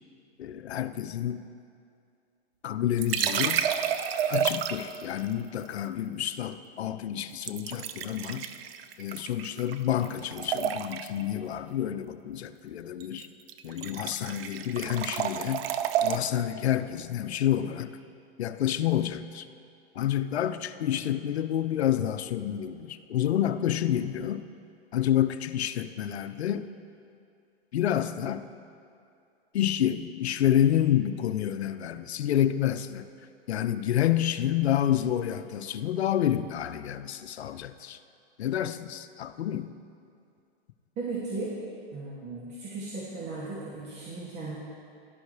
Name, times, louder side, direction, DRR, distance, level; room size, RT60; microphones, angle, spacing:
voice 1, 0.4-1.4 2.6-3.6 4.3-8.5 9.0-13.3 13.6-15.7 16.0-17.9 18.4-19.4 19.9-24.5 24.9-26.7 27.7-28.5 29.5-33.1 33.5-38.0 38.4-39.7, left 11 dB, 80° left, 11 dB, 0.7 m, -28 dB
sound 1, 3.0-5.0 7.4-9.8 10.0-11.2 13.0-13.2 13.5-16.2, right 9 dB, 65° right, 0.7 m, -30 dB
voice 2, 41.0-41.6 41.9-44.6, right 3 dB, 35° right, -7 dB, 2.4 m, -36 dB
17.0 x 12.0 x 3.3 m, 2.4 s
hypercardioid pair, 125°, 32 cm